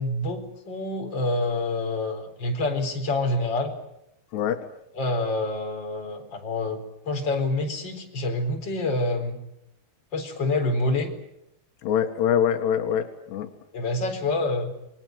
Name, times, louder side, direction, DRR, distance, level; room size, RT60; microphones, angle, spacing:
voice 1, 0.0-3.7 4.9-9.4 10.1-11.1 13.7-14.7, left 2 dB, 25° left, 3 dB, 4.4 m, -27 dB
voice 2, 4.3-4.7 11.8-13.5, left 9 dB, 80° left, 6 dB, 3.7 m, -24 dB
29.0 x 22.0 x 7.9 m, 0.82 s
omnidirectional pair, 4.8 m